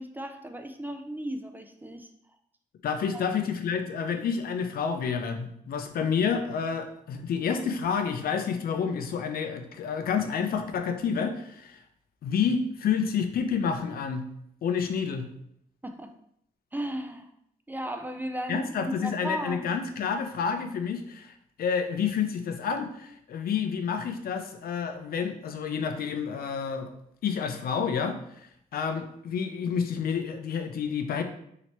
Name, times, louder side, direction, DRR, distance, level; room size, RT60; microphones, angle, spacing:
voice 1, 0.0-2.1 3.1-3.3 15.8-16.1 16.7-17.3 17.7-19.7, right 1 dB, 10° right, 6 dB, 0.3 m, -35 dB
voice 2, 2.8-11.8 12.2-14.2 14.6-15.3 18.5-26.9 27.2-31.2, left 6 dB, 80° left, 6 dB, 0.5 m, -29 dB
3.0 x 2.8 x 4.4 m, 0.71 s
wide cardioid pair, 125°, 15 cm